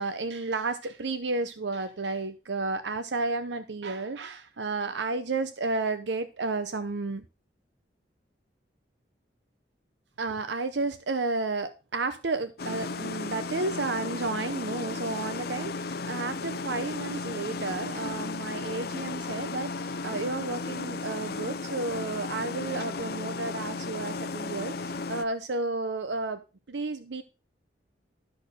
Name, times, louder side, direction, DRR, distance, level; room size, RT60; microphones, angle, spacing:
voice 1, 0.0-7.2 10.2-26.4 26.7-27.2, right 3 dB, 75° right, 11 dB, 0.7 m, -32 dB
sound 1, 12.6-25.2, left 3 dB, 60° left, 0.6 m, -35 dB
12.5 x 4.3 x 6.5 m, 0.31 s
head